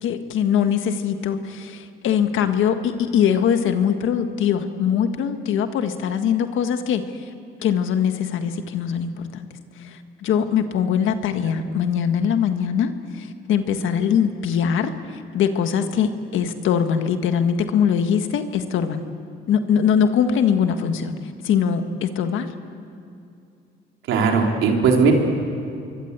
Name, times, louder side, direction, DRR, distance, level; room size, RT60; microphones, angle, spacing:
voice 1, 0.0-7.2 7.6-9.5 9.8-19.0 19.5-22.5, left 8 dB, 80° left, 8 dB, 1.6 m, -22 dB
voice 2, 24.1-25.1, right 5 dB, 90° right, 1 dB, 3.5 m, -18 dB
26.5 x 23.0 x 8.2 m, 2.5 s
cardioid pair, 90°, 20 cm